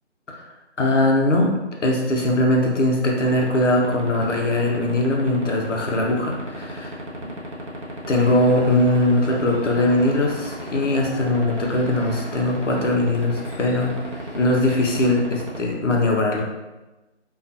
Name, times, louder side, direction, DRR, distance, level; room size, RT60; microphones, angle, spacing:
voice 1, 0.8-1.5 1.8-7.0 8.1-13.9 14.3-16.4, left 1 dB, 85° left, -1 dB, 0.8 m, -20 dB
sound 1, 3.2-15.6, right 1 dB, 80° right, 0.9 m, -34 dB
sound 2, 8.1-14.5, equal, 55° left, 0.9 m, -41 dB
2.4 x 2.3 x 2.5 m, 1.1 s
figure-of-eight pair, 160°, 36 cm